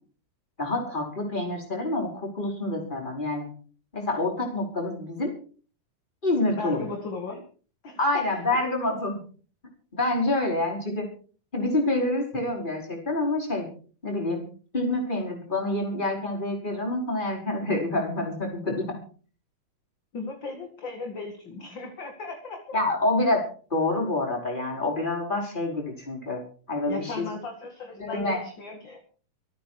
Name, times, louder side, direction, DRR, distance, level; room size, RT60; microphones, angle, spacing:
voice 1, 0.6-3.5 3.9-5.4 6.2-6.8 8.0-9.2 9.9-11.1 11.5-13.7 14.0-14.4 14.7-19.0 22.7-27.3 28.0-28.4, left 2 dB, 10° left, 0 dB, 5.2 m, -27 dB
voice 2, 6.5-7.4 7.8-8.2 8.5-8.6 20.1-22.8 26.9-29.0, left 3 dB, 40° left, 3 dB, 2.3 m, -36 dB
26.0 x 9.3 x 4.8 m, 0.41 s
omnidirectional pair, 4.1 m